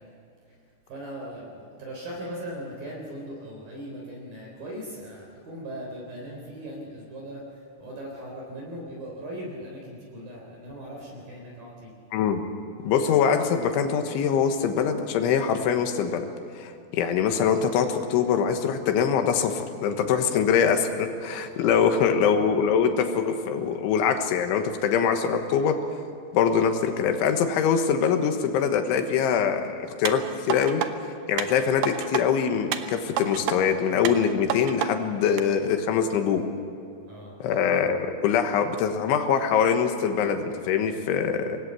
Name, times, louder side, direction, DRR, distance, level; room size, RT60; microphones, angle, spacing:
voice 1, 0.9-11.9 21.5-21.9 37.0-37.3, equal, 50° right, -2 dB, 5.0 m, -39 dB
voice 2, 12.1-12.4 12.9-16.3 16.6-25.8 26.3-30.8 31.3-36.4 37.4-41.6, left 7 dB, 85° left, 6 dB, 3.7 m, -23 dB
sound 1, 30.1-30.9 31.4-32.2 32.7-33.6 34.1-34.9 35.4-35.5, right 10 dB, 80° right, 2.1 m, -29 dB
24.5 x 20.0 x 8.4 m, 2.5 s
omnidirectional pair, 5.5 m